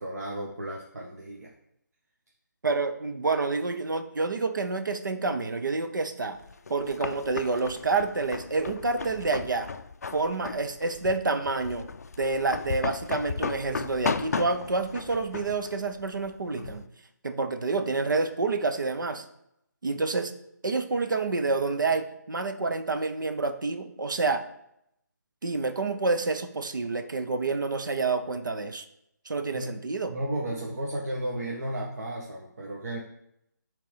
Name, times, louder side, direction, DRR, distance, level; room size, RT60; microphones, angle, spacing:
voice 1, 0.0-1.5 29.5-29.7 30.1-33.0, right 1 dB, 55° right, -2 dB, 1.0 m, -33 dB
voice 2, 2.6-6.4 6.7-9.7 10.1-11.9 12.2-16.8 17.2-19.2 19.8-20.3 20.6-24.4 25.4-28.9 29.3-30.1, right 3 dB, 80° right, 8 dB, 0.8 m, -28 dB
sound 1, 6.4-16.8, left 5 dB, 55° left, 0.3 m, -35 dB
6.7 x 3.4 x 5.0 m, 0.78 s
hypercardioid pair, 170°, 10 cm